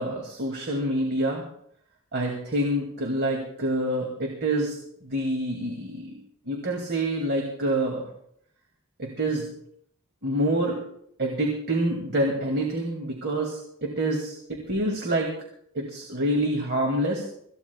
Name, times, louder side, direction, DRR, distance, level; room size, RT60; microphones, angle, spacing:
voice 1, 0.0-1.4 2.1-6.1 6.5-8.0 9.0-9.5 10.2-10.8 11.2-15.3 15.7-17.2, right 1 dB, 50° right, 0 dB, 2.4 m, -27 dB
25.5 x 15.0 x 2.3 m, 0.69 s
head